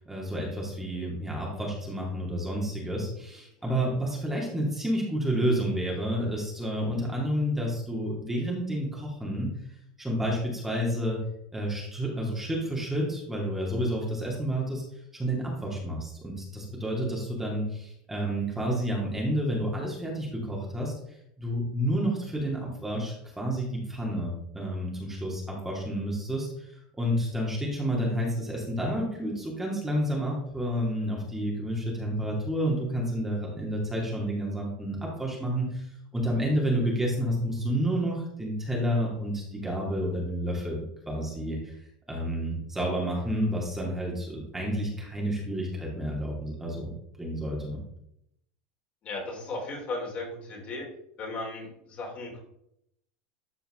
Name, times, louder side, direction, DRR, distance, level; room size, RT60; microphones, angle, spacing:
voice 1, 0.0-9.5 10.0-11.2 11.5-14.8 15.1-20.9 21.4-26.5 27.0-35.8 36.1-41.7 42.1-46.9 47.2-47.8, equal, 10° right, -3 dB, 2.4 m, -30 dB
voice 2, 49.0-50.8 51.2-52.4, left 2 dB, 40° left, -1 dB, 3.3 m, -36 dB
12.5 x 4.5 x 3.7 m, 0.76 s
supercardioid pair, 120°, 4 cm